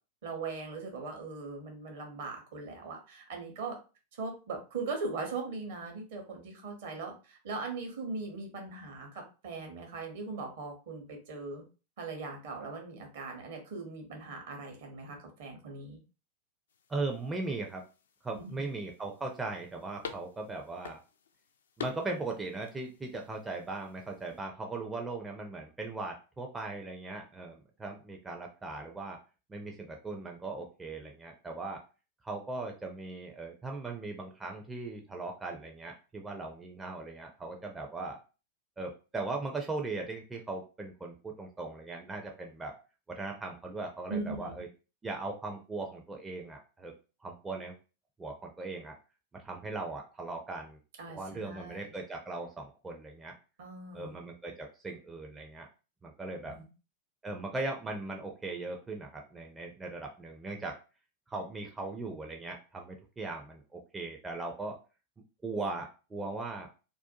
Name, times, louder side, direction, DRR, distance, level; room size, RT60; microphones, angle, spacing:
voice 1, 0.2-3.8 4.1-11.6 12.0-16.0 18.3-18.7 44.1-44.6 51.0-51.8 53.6-54.2 56.5-56.7, right 3 dB, 55° right, 2 dB, 0.8 m, -40 dB
sound 1, 16.7-24.4, left 7 dB, 65° left, 0.3 m, -49 dB
voice 2, 16.9-17.8 18.2-21.0 21.8-29.2 29.5-31.8 32.2-38.2 38.8-42.7 43.1-44.7 45.0-46.9 47.2-47.7 48.2-49.0 49.3-50.8 51.1-53.3 53.9-55.7 56.0-56.6 57.2-60.8 61.3-64.8 65.4-66.8, right 3 dB, 15° right, 2 dB, 0.4 m, -39 dB
2.5 x 2.2 x 2.6 m, 0.33 s
figure-of-eight pair, 90°, 0 cm